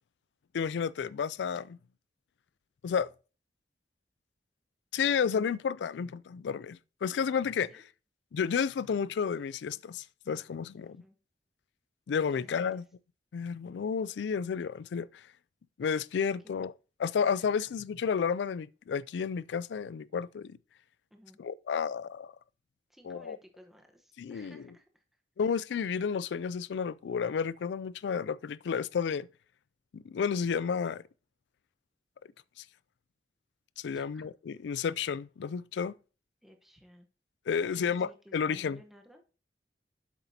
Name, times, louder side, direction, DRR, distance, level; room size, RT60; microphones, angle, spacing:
voice 1, 0.5-1.8 2.8-3.1 4.9-7.7 8.3-11.0 12.1-12.8 13.3-15.2 15.8-16.7 17.0-20.6 21.4-22.3 23.0-23.4 24.2-24.6 25.4-29.3 29.9-31.0 32.6-32.7 33.8-36.0 37.5-38.8, left 6 dB, 80° left, 0.3 m, -31 dB
voice 2, 10.8-11.2 12.3-12.8 16.4-16.7 17.4-17.7 21.1-21.4 22.9-25.0 33.9-34.3 36.4-37.1 37.7-39.2, equal, ahead, 1.0 m, -56 dB
7.9 x 7.3 x 2.8 m
head